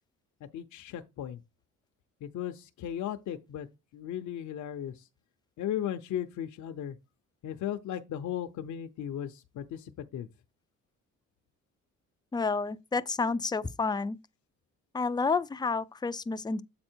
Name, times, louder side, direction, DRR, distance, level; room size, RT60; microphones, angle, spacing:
voice 1, 0.5-1.4 2.2-3.7 3.9-5.0 5.6-7.0 7.4-10.3, left 10 dB, 70° left, 0.8 m, -36 dB
voice 2, 12.3-14.2 14.9-16.6, left 4 dB, 15° left, 0.4 m, -30 dB
7.7 x 4.3 x 4.5 m
cardioid pair, 90°, 30 cm